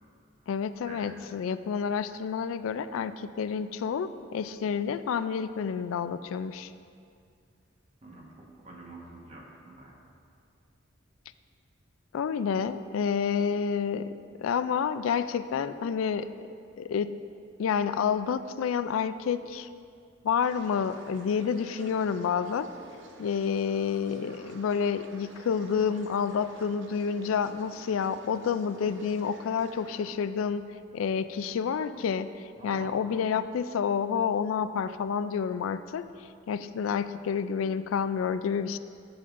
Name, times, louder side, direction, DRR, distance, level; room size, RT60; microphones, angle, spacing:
voice 1, 0.5-6.7 12.1-16.3 16.8-17.1 17.6-19.7 20.2-22.7 23.2-30.6 30.9-32.3 32.6-36.1 36.5-38.8, left 6 dB, 90° left, 13 dB, 0.3 m, -29 dB
voice 2, 8.0-10.0 32.6-32.9, right 2 dB, 35° right, -3 dB, 1.3 m, -47 dB
sound 1, 20.4-30.1, right 2 dB, 65° right, 0.8 m, -51 dB
13.5 x 7.1 x 2.5 m, 2.3 s
head